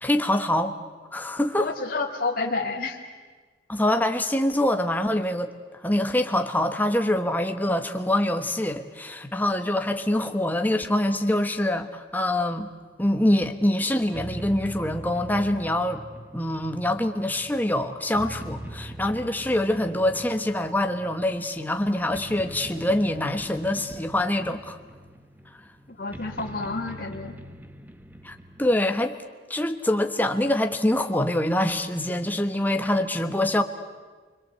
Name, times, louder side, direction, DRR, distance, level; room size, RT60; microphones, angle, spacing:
voice 1, 0.0-0.7 1.1-1.7 3.7-12.7 13.0-16.0 16.3-24.8 28.2-29.2 29.5-33.6, left 1 dB, 10° left, 6 dB, 1.3 m, -25 dB
voice 2, 1.6-3.0 26.0-27.3, left 3 dB, 50° left, 0 dB, 2.4 m, -29 dB
sound 1, 13.2-28.8, right 1 dB, 10° right, 1.0 m, -42 dB
29.0 x 22.0 x 8.1 m, 1.4 s
head